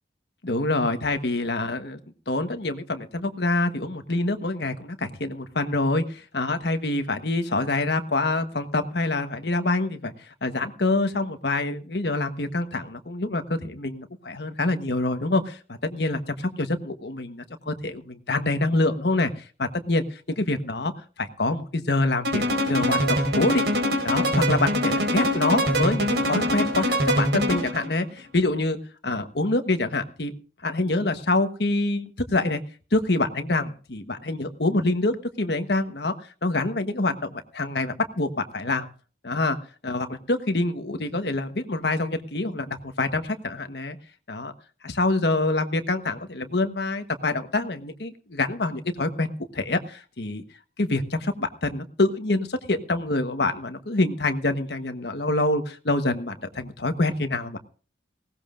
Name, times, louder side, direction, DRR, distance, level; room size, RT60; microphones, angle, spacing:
voice 1, 0.4-2.0 2.3-10.1 10.4-19.3 19.6-20.9 21.2-23.7 24.0-28.8 29.0-30.3 30.6-32.6 32.9-36.1 36.4-38.9 39.2-39.6 39.8-44.0 44.3-44.5 44.8-50.4 50.8-57.6, left 2 dB, 75° left, 8 dB, 1.3 m, -26 dB
sound 1, 22.2-27.9, equal, 85° right, 4.6 m, -24 dB
19.5 x 18.0 x 2.6 m, 0.38 s
head